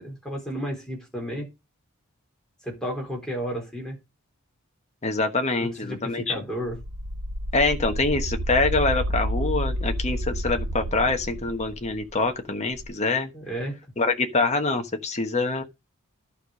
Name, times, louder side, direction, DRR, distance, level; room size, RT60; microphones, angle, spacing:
voice 1, 0.0-1.5 2.6-4.0 5.6-6.8 13.3-13.8, equal, 5° left, 4.2 m, -32 dB
voice 2, 5.0-6.3 7.5-13.3 14.0-15.6, left 3 dB, 30° left, 1.2 m, -25 dB
sound 1, 6.7-12.3 12.8-12.9, equal, 80° right, 2.6 m, -30 dB
11.5 x 4.9 x 5.2 m
head